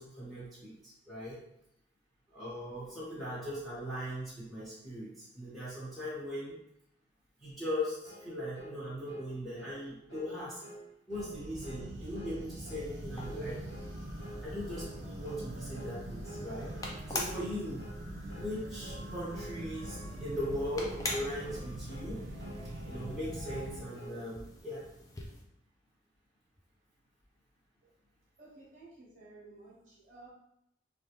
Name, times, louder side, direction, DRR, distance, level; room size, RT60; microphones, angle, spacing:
voice 1, 0.0-1.4 2.3-6.6 7.4-10.6 11.1-13.6 14.4-14.8 15.2-16.7 17.1-17.8 18.3-22.2 22.9-24.8, left 1 dB, ahead, -10 dB, 1.1 m, -39 dB
sound 1, 8.0-8.3 8.5-8.8 9.1-9.3 9.6-9.8 10.1-10.3 10.6-10.8 11.1-11.3 11.6-11.9 12.1-12.4 12.6-12.9 13.2-13.4 13.7-13.9 14.2-14.4 14.7-14.9 15.2-15.5 15.7-15.9 16.2-16.5 16.7-17.0 17.3-17.5 17.8-18.0 18.3-18.5 18.8-19.0 19.3-19.5 19.8-20.1 20.3-20.6 20.9-21.1 21.4-21.6 21.9-22.1 22.4-22.6 22.9-23.1 23.4-24.2, right 1 dB, 60° left, 1.1 m, -48 dB
sound 2, 11.1-23.8, right 1 dB, 75° right, 0.6 m, -43 dB
sound 3, 12.7-25.4, left 2 dB, 20° left, 0.3 m, -46 dB
voice 2, 28.4-30.3, right 2 dB, 45° right, -6 dB, 0.9 m, -54 dB
3.4 x 2.3 x 2.9 m, 0.80 s
head